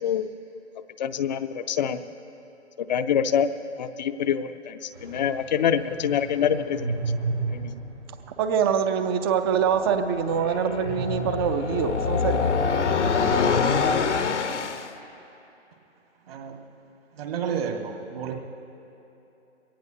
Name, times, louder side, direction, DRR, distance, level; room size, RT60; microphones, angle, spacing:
voice 1, 1.0-2.0 2.9-3.5 3.8-6.9 7.5-7.7, left 8 dB, 40° left, 11 dB, 0.6 m, -25 dB
sound 1, 4.9-9.2 9.6-9.7 10.8-12.5, right 3 dB, 80° right, 4.0 m, -34 dB
voice 2, 8.4-12.5, right 7 dB, 20° right, 9 dB, 0.5 m, -24 dB
sound 2, 9.4-14.9, left 5 dB, 75° left, 1.0 m, -25 dB
voice 3, 16.3-16.6 17.1-18.3, right 7 dB, 55° right, 2 dB, 1.9 m, -31 dB
22.5 x 18.0 x 2.8 m, 3.0 s
figure-of-eight pair, 130°, 36 cm